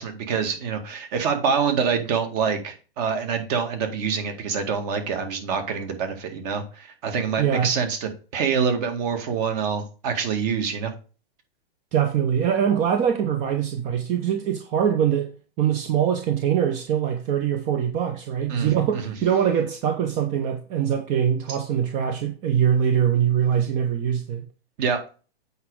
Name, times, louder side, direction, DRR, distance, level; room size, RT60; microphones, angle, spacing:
voice 1, 0.0-10.9 18.5-18.7 19.0-19.1 24.8-25.0, right 6 dB, 40° right, 2.0 m, -26 dB
voice 2, 7.4-7.7 11.9-15.3 15.6-24.5, right 8 dB, 25° right, 0.8 m, -23 dB
8.1 x 5.1 x 4.8 m
hypercardioid pair, 140°, 31 cm